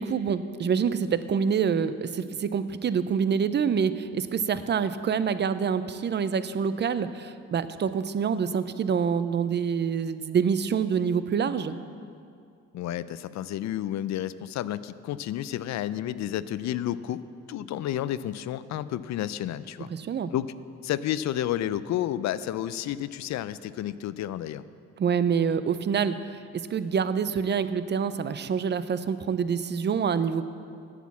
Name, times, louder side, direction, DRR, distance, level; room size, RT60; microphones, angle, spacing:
voice 1, 0.0-11.7 19.9-20.3 25.0-30.4, right 6 dB, 35° right, 13 dB, 0.5 m, -26 dB
voice 2, 12.7-17.2 17.5-19.9 20.3-20.5 20.8-24.6, left 12 dB, 65° left, 15 dB, 0.4 m, -31 dB
8.4 x 8.2 x 7.2 m, 2.4 s
cardioid pair, 90°, 30 cm